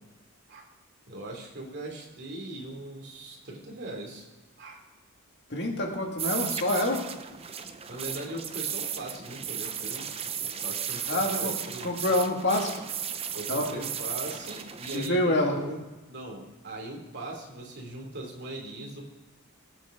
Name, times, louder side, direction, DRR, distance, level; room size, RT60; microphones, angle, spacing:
voice 1, 1.1-4.3 4.6-4.8 7.9-10.1 10.4-11.9 13.3-15.8 16.1-19.1, right 2 dB, 50° right, 0 dB, 2.9 m, -40 dB
voice 2, 5.5-7.0 11.1-11.5 11.8-12.8 13.5-13.6 14.9-15.6, left 1 dB, 50° left, 0 dB, 2.3 m, -26 dB
sound 1, 6.2-15.1, right 8 dB, 25° right, 0.6 m, -35 dB
19.0 x 8.2 x 3.8 m, 1.1 s
head